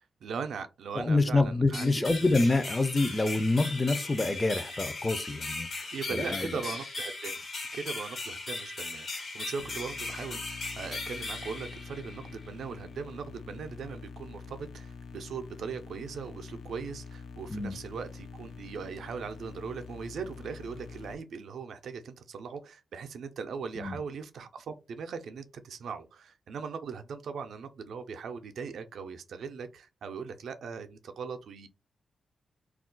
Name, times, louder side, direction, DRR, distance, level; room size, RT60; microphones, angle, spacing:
voice 1, 0.2-2.1 5.9-7.4 7.7-31.7, right 5 dB, 85° right, 0.4 m, -39 dB
voice 2, 0.9-6.6 17.5-17.8 23.8-24.0, left 2 dB, 25° left, 0.4 m, -27 dB
sound 1, 1.7-12.4, left 3 dB, 60° left, 1.2 m, -38 dB
sound 2, 9.6-21.1, left 5 dB, 90° left, 0.4 m, -46 dB
2.3 x 2.2 x 3.7 m
cardioid pair, 95°, 0 cm